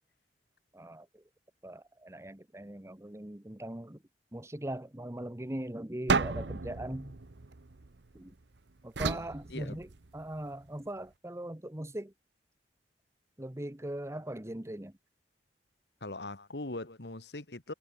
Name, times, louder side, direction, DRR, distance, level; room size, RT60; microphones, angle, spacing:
voice 1, 0.7-1.2 1.6-4.0 4.3-7.2 8.1-8.3 8.8-9.9 10.1-12.1 13.4-14.9, right 1 dB, 15° right, 1.1 m, -40 dB
sound 1, 6.1-8.3 9.0-10.3, right 4 dB, 85° right, 1.0 m, -33 dB
voice 2, 16.0-17.7, left 2 dB, 70° left, 1.9 m, -40 dB
head